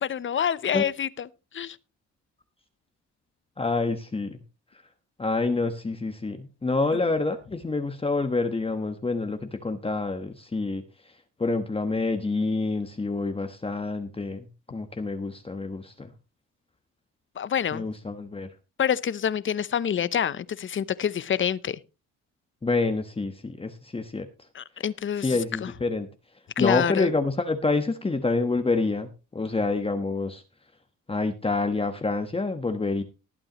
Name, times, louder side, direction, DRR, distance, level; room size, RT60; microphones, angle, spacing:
voice 1, 0.0-1.3 1.5-1.8 17.4-17.8 18.8-21.8 24.5-25.7 26.6-27.1, left 8 dB, 40° left, 0.7 m, -27 dB
voice 2, 3.6-4.4 5.2-11.1 11.4-14.4 14.7-16.1 17.7-18.5 22.6-24.3 25.2-26.1 26.6-30.4 31.1-33.0, left 3 dB, 20° left, 1.2 m, -27 dB
19.5 x 8.7 x 3.0 m
cardioid pair, 90°, 30 cm